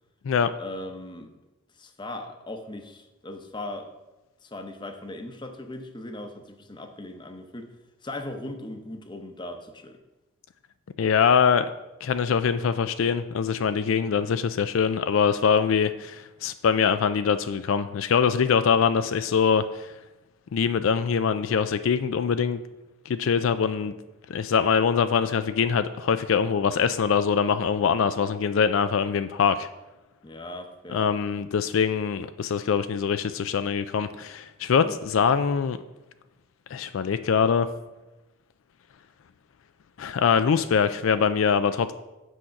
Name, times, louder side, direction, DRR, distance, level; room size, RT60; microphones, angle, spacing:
voice 1, 0.6-1.3 1.8-3.9 4.4-7.7 8.0-10.0 30.2-31.1 34.8-34.9, left 1 dB, 20° left, 5 dB, 0.8 m, -38 dB
voice 2, 11.0-11.7 12.0-19.9 20.5-22.6 23.1-23.9 24.3-29.7 30.9-35.8 36.7-37.7 40.0-41.9, left 6 dB, 70° left, 11 dB, 0.4 m, -23 dB
7.7 x 6.3 x 5.8 m, 1.0 s
head